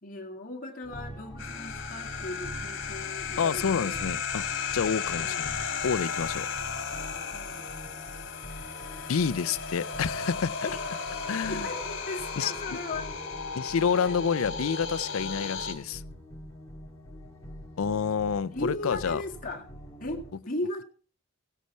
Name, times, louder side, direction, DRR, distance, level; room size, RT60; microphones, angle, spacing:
voice 1, 0.0-4.0 5.1-5.4 7.3-7.7 10.6-10.8 11.5-13.1 14.0-14.2 18.5-19.6 20.0-20.8, left 2 dB, 40° left, 2.0 m, -37 dB
sound 1, 0.8-20.3, equal, 15° left, 1.9 m, -44 dB
sound 2, 1.4-15.7, left 6 dB, 65° left, 2.0 m, -35 dB
voice 2, 3.4-4.4 4.7-6.5 9.1-10.7 11.3-11.7 12.4-12.5 13.5-16.0 17.8-19.2, left 6 dB, 80° left, 0.5 m, -28 dB
15.5 x 8.3 x 4.4 m
head